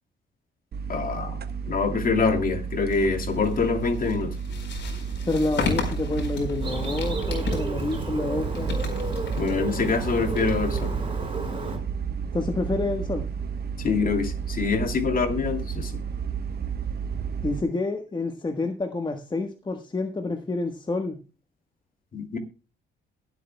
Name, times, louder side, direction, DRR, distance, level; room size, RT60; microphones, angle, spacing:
sound 1, 0.7-17.6, right 6 dB, 55° right, 1.2 m, -32 dB
voice 1, 0.9-1.4 1.7-4.3 9.4-10.9 13.8-15.9 22.1-22.4, left 4 dB, 45° left, 7 dB, 2.6 m, -25 dB
sound 2, 2.8-11.5, left 4 dB, 60° left, 4.4 m, -35 dB
voice 2, 5.2-8.8 12.3-13.3 17.4-21.2, left 3 dB, 20° left, 5 dB, 1.3 m, -28 dB
Bird, 6.6-11.8, right 2 dB, 25° right, 5.0 m, -32 dB
22.0 x 8.3 x 2.3 m, 0.31 s
cardioid pair, 90°, 20 cm